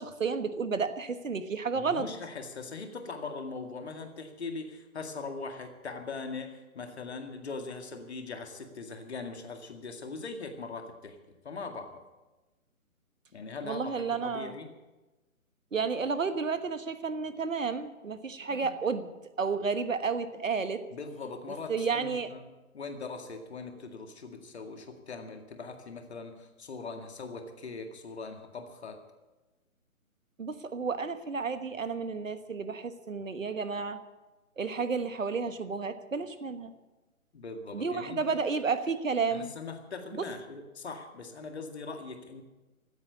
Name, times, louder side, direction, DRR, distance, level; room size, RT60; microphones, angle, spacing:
voice 1, 0.0-2.0 13.6-14.5 15.7-20.8 21.7-22.3 30.4-34.0 34.6-36.7 37.7-39.5 40.2-40.3, right 5 dB, 65° right, 11 dB, 1.4 m, -31 dB
voice 2, 1.8-11.2 11.4-12.0 13.3-14.7 18.5-18.7 20.9-29.0 37.3-38.3 39.3-42.4, left 4 dB, 50° left, 5 dB, 2.2 m, -41 dB
16.0 x 9.5 x 8.4 m, 1.1 s
figure-of-eight pair, 140°, 42 cm